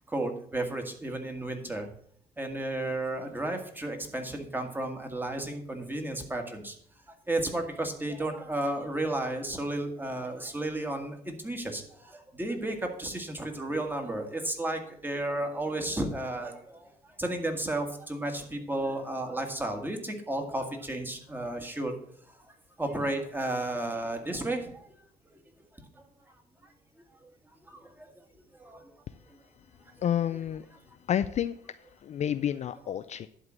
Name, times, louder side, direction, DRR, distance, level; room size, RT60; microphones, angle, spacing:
voice 1, 0.1-1.9 2.4-6.7 7.1-21.9 22.3-22.5 22.8-24.9 27.6-28.1 28.5-28.9, right 1 dB, 10° right, 4 dB, 1.7 m, -33 dB
voice 2, 30.0-30.7 31.1-31.5 32.0-33.3, left 10 dB, 40° left, 12 dB, 0.4 m, -29 dB
11.0 x 3.8 x 7.5 m, 0.62 s
cardioid pair, 110°, 17 cm